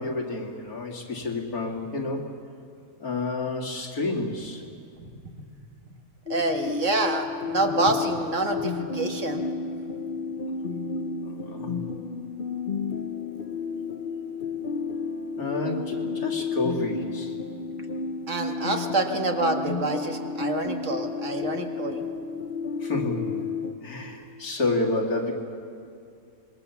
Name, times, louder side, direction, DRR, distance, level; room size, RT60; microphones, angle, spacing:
voice 1, 0.0-2.3 3.0-4.6 11.2-11.8 15.4-17.4 22.8-23.4 23.8-25.3, left 2 dB, 75° left, 1 dB, 2.9 m, -29 dB
sound 1, 6.3-23.7, left 4 dB, 40° left, 1.0 m, -32 dB
voice 2, 6.3-9.4 18.3-22.0, right 2 dB, 55° right, 4 dB, 2.0 m, -27 dB
25.5 x 21.5 x 7.1 m, 2.4 s
omnidirectional pair, 1.6 m